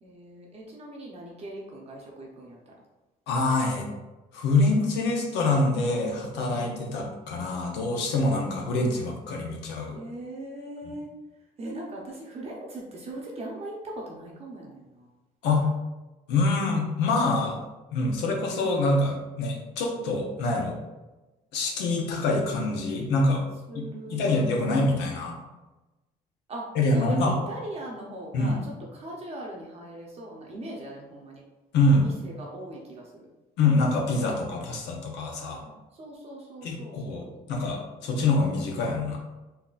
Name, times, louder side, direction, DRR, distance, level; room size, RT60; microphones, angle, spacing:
voice 1, 0.0-2.8 9.9-11.1 11.6-15.1 23.7-24.3 26.5-31.4 32.0-33.3 35.9-37.3, right 1 dB, 35° right, -2 dB, 0.6 m, -40 dB
voice 2, 3.3-3.9 4.3-10.0 15.4-15.7 16.3-17.6 17.9-20.8 21.5-23.4 23.7-25.4 26.7-27.4 28.3-28.6 31.7-32.1 33.6-35.6 36.6-39.2, left 2 dB, 90° left, 1 dB, 0.7 m, -25 dB
3.8 x 2.7 x 2.4 m, 1.1 s
cardioid pair, 110°, 17 cm